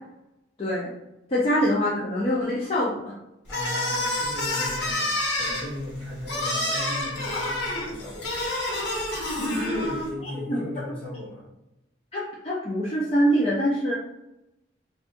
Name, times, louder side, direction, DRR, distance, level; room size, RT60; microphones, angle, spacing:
voice 1, 0.6-0.9 1.3-3.1 10.2-10.6 12.1-14.0, equal, 35° left, -6 dB, 0.5 m, -24 dB
sound 1, 3.5-10.1, left 1 dB, 75° left, 1.1 m, -28 dB
voice 2, 3.5-8.5 9.3-11.5, left 1 dB, 5° left, -8 dB, 1.2 m, -36 dB
4.1 x 2.3 x 2.5 m, 0.90 s
head